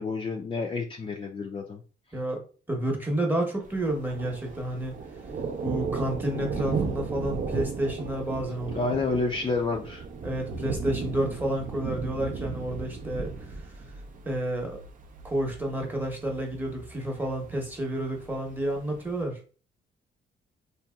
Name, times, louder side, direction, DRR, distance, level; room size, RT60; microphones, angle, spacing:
voice 1, 0.0-1.8 8.8-10.0, left 3 dB, 25° left, 2 dB, 0.4 m, -29 dB
voice 2, 2.7-5.0 5.6-8.9 10.2-13.3 14.2-14.8 15.2-19.4, right 1 dB, 10° right, 1 dB, 0.9 m, -30 dB
Thunder, 3.6-19.2, right 4 dB, 40° right, 0.5 m, -36 dB
2.7 x 2.7 x 2.3 m, 0.37 s
cardioid pair, 90°, 20 cm